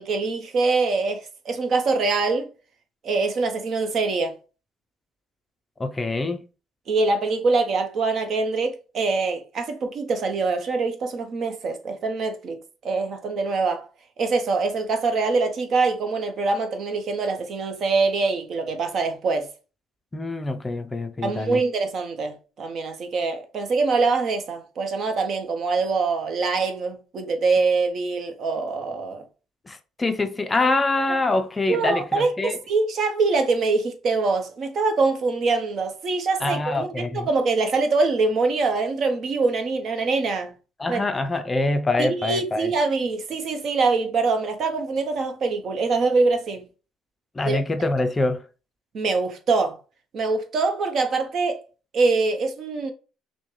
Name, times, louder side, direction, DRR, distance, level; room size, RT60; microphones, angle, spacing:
voice 1, 0.0-2.5 3.0-4.4 6.9-12.6 12.8-13.9 14.2-19.5 21.2-29.2 31.7-40.5 40.9-41.0 42.0-46.6 47.5-47.6 48.9-49.8 50.1-51.6 51.9-52.9, right 3 dB, 50° right, 0.8 m, -24 dB
voice 2, 5.8-6.4 20.1-21.6 29.7-32.6 36.4-37.3 40.8-42.7 47.4-48.4, left 2 dB, 20° left, 0.4 m, -25 dB
6.2 x 2.1 x 3.1 m
cardioid pair, 115°, 0 cm